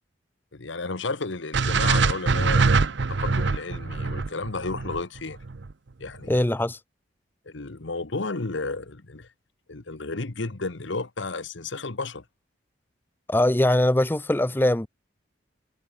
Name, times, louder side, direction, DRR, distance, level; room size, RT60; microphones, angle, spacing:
voice 1, 0.5-5.4 6.0-6.4 7.5-9.3 9.7-12.2, left 3 dB, 70° left, 1.2 m, -32 dB
sound 1, 1.5-5.7, right 4 dB, 65° right, 0.7 m, -23 dB
voice 2, 6.3-6.8 13.3-14.9, left 1 dB, 10° left, 0.5 m, -21 dB
head